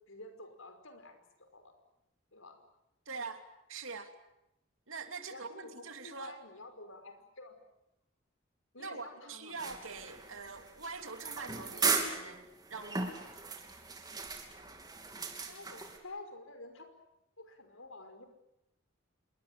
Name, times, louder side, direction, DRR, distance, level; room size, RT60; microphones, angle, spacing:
voice 1, 0.1-1.7 2.3-2.6 5.3-7.6 8.7-9.6 15.5-16.9 17.4-18.3, left 2 dB, 80° left, 8 dB, 5.3 m, -50 dB
voice 2, 3.1-3.4 3.7-4.1 4.9-6.4 8.8-13.2, right 4 dB, 75° right, 7 dB, 3.0 m, -44 dB
sound 1, 9.6-16.0, right 4 dB, 20° right, 3.1 m, -37 dB
27.5 x 22.5 x 8.9 m, 0.85 s
head